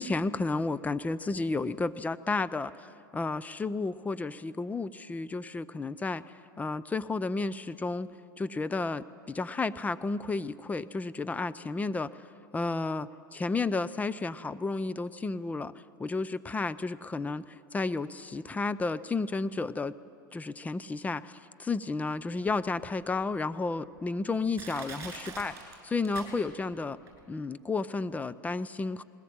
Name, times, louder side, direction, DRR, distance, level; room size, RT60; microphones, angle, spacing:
voice 1, 0.0-6.2 6.6-8.1 8.4-12.2 12.5-15.7 16.0-20.0 20.3-25.5 25.8-27.0 27.3-29.0, left 3 dB, 15° left, 14 dB, 0.6 m, -32 dB
Crushing, 22.5-22.6 23.2-23.3 24.0-24.1 24.5-26.7 27.1-27.2, right 5 dB, 25° right, 7.3 m, -44 dB
20.5 x 19.0 x 8.8 m, 2.4 s
hypercardioid pair, 100°, 12 cm